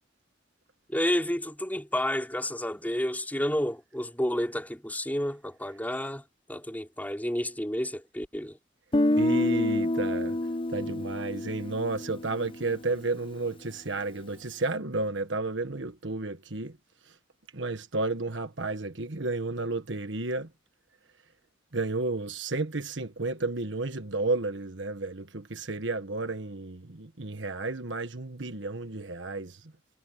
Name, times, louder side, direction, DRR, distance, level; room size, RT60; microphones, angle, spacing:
voice 1, 0.9-6.2 6.5-8.6, equal, 10° left, 4.3 m, -30 dB
Guitar, 8.9-12.9, left 1 dB, 25° left, 0.6 m, -28 dB
voice 2, 9.1-10.4 10.7-16.8 17.5-20.5 21.7-29.6, right 3 dB, 70° right, 1.5 m, -32 dB
head